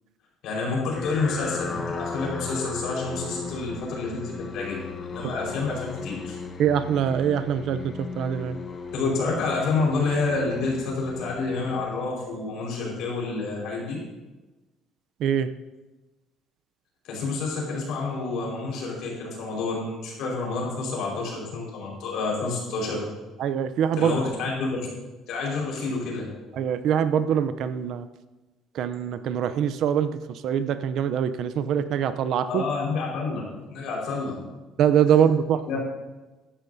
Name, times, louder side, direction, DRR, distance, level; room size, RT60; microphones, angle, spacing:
voice 1, 0.4-6.4 8.9-14.0 17.0-23.1 24.0-24.9 25.3-26.3 32.5-33.4 33.7-34.4 35.7-35.8, left 3 dB, 60° left, -2 dB, 4.6 m, -28 dB
sound 1, 0.9-12.3, left 4 dB, 25° left, 0.9 m, -36 dB
voice 2, 6.6-8.6 15.2-15.5 23.4-24.2 26.5-28.1 28.7-32.6 34.8-35.6, right 8 dB, 50° right, 12 dB, 0.6 m, -23 dB
16.0 x 12.0 x 2.7 m, 1.1 s
cardioid pair, 180°, 0 cm